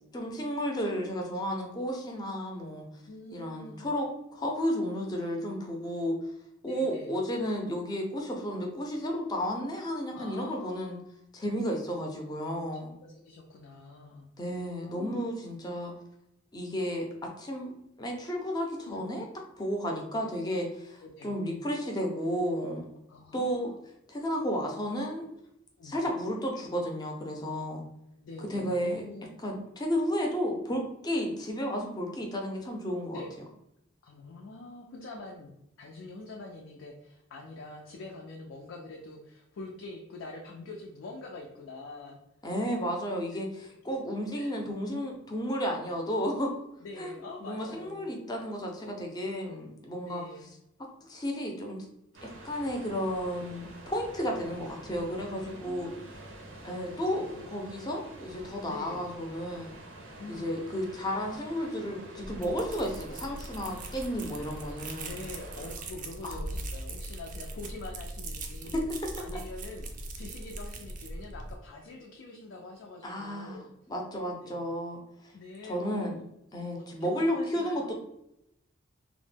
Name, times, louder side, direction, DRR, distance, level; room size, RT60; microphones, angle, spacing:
voice 1, 0.1-2.9 3.3-6.2 6.6-11.0 11.3-12.9 14.4-15.9 16.5-17.1 17.4-19.2 19.6-22.9 23.3-23.7 24.1-25.3 25.8-27.8 28.4-29.0 29.4-33.2 42.4-46.5 47.0-47.1 47.4-50.2 51.0-51.8 52.2-55.9 56.6-59.7 60.3-65.1 66.2-66.4 68.7-68.8 73.0-75.3 75.6-76.2 76.5-77.9, equal, 20° left, 1 dB, 0.4 m, -32 dB
voice 2, 3.1-3.9 6.7-7.2 10.1-11.0 13.0-14.3 14.9-15.3 18.8-19.1 21.0-21.4 23.1-23.8 25.8-26.0 28.2-29.3 33.1-33.3 34.0-35.5 35.8-42.2 44.3-44.5 46.8-48.2 50.0-50.6 55.2-56.1 56.9-57.5 58.7-59.0 60.2-60.6 63.7-63.9 65.0-68.8 69.2-73.7 74.4-74.6 75.3-76.2 76.7-77.9, left 2 dB, 90° left, 0 dB, 0.4 m, -45 dB
sound 1, 52.1-65.8, right 1 dB, 90° right, 0.5 m, -48 dB
sound 2, 62.2-71.6, right 2 dB, 45° right, 0.3 m, -40 dB
2.1 x 2.1 x 3.2 m, 0.80 s
head